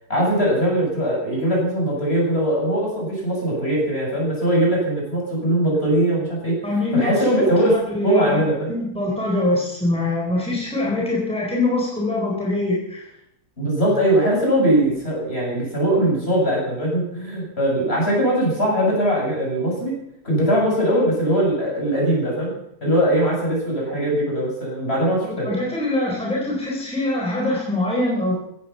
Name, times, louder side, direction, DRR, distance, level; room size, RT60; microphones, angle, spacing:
voice 1, 0.1-6.6 6.9-8.7 13.6-20.0 20.2-22.5 22.8-25.5, right 1 dB, 40° left, -3 dB, 7.7 m, -21 dB
voice 2, 6.6-8.4 8.7-13.0 25.2-28.3, left 2 dB, 5° left, -3 dB, 4.2 m, -23 dB
16.0 x 15.0 x 5.7 m, 0.77 s
omnidirectional pair, 1.7 m